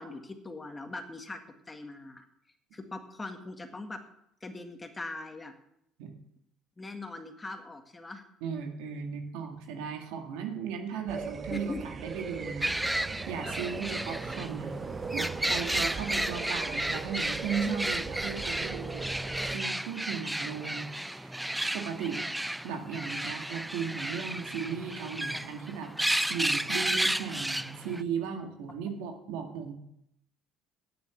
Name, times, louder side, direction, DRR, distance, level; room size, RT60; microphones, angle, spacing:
voice 1, 0.0-1.4 1.7-2.2 2.7-4.0 4.4-5.5 6.8-8.2 11.5-11.8 13.4-13.5 13.9-14.0 25.3-25.4, left 2 dB, 20° left, 7 dB, 1.6 m, -41 dB
voice 2, 8.4-14.7 15.1-21.4 21.7-22.2 22.6-25.9 26.3-29.7, right 6 dB, 80° right, 4 dB, 1.9 m, -36 dB
sound 1, 11.1-19.6, right 4 dB, 35° right, 0.9 m, -39 dB
sound 2, 12.6-28.0, right 1 dB, 5° right, 0.3 m, -33 dB
9.2 x 6.9 x 7.6 m, 0.76 s
supercardioid pair, 80°, 0 cm